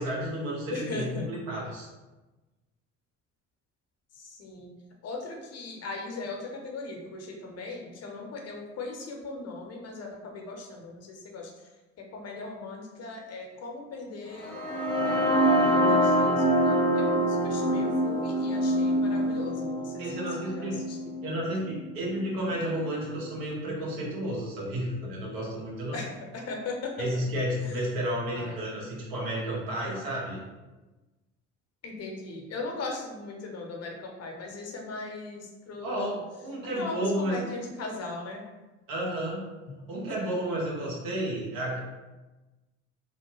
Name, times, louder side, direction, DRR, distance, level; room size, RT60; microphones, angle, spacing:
voice 1, 0.0-1.9 20.0-20.8 21.2-26.0 27.0-30.4 35.8-37.4 38.9-39.5 39.9-41.8, equal, 65° right, -4 dB, 1.2 m, -32 dB
voice 2, 0.7-1.2 4.1-4.7 5.0-11.7 12.1-14.7 15.0-21.1 25.9-27.1 27.7-27.8 28.3-28.5 31.8-36.2 36.8-38.4 39.7-39.8 40.2-40.3, left 3 dB, 45° left, 1 dB, 0.7 m, -39 dB
sound 1, 14.4-22.3, equal, 15° right, 1.1 m, -25 dB
3.0 x 2.1 x 3.0 m, 1.1 s
hypercardioid pair, 65°, 36 cm